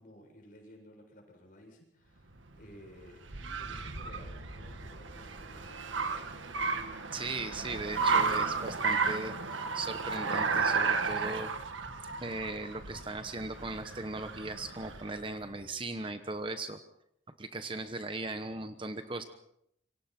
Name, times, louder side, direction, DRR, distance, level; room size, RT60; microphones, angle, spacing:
voice 1, 0.0-6.5, equal, 45° left, 1 dB, 7.3 m, -55 dB
Car, 2.3-15.2, right 4 dB, 90° right, 1.9 m, -33 dB
voice 2, 7.1-9.4 9.7-11.5 12.2-16.8 17.4-19.2, right 2 dB, 25° right, 8 dB, 1.1 m, -38 dB
27.0 x 24.0 x 4.5 m, 0.73 s
head